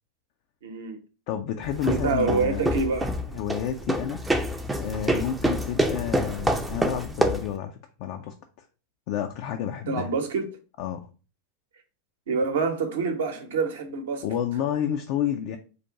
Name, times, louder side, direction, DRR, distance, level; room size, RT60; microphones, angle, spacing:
voice 1, 0.6-1.0 1.9-3.2 9.9-10.5 12.3-14.2, right 4 dB, 60° right, 0.8 m, -26 dB
voice 2, 1.3-2.8 3.3-4.2 4.8-8.3 9.1-10.1 10.8-11.1 14.2-15.6, left 9 dB, 45° left, 0.4 m, -30 dB
sound 1, 1.6-7.5, right 1 dB, 5° right, 0.5 m, -27 dB
4.1 x 2.5 x 4.6 m
figure-of-eight pair, 90°, 0 cm